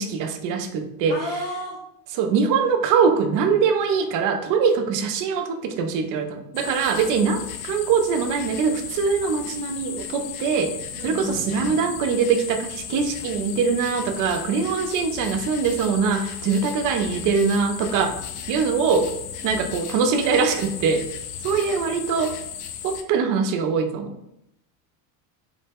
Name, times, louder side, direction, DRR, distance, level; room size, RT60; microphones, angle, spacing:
voice 1, 0.0-1.2 2.2-10.8 11.0-18.2 18.5-19.1 19.4-21.1 21.4-22.4 22.8-24.1, right 5 dB, 45° right, 6 dB, 0.4 m, -22 dB
voice 2, 1.1-1.8 10.9-11.8, left 1 dB, 75° left, -4 dB, 1.5 m, -32 dB
sound 1, 6.5-23.0, left 8 dB, 55° left, 0.5 m, -35 dB
3.2 x 2.1 x 3.3 m, 0.81 s
supercardioid pair, 120°, 49 cm